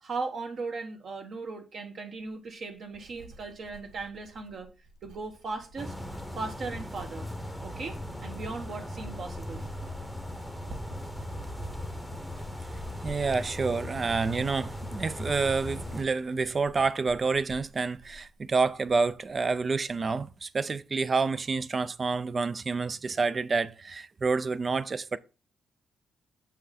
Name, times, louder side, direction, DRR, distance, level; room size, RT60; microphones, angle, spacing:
voice 1, 0.0-4.7 5.0-5.9 6.4-7.3 7.6-9.6, right 3 dB, 45° right, 1.0 m, -37 dB
Writing, 2.3-19.3 19.5-20.0, right 2 dB, 75° right, 1.4 m, -52 dB
sound 1, 5.8-16.0, left 1 dB, ahead, 0.9 m, -38 dB
voice 2, 13.0-25.2, right 4 dB, 25° right, 0.4 m, -28 dB
7.4 x 5.7 x 4.1 m
wide cardioid pair, 170°, 0 cm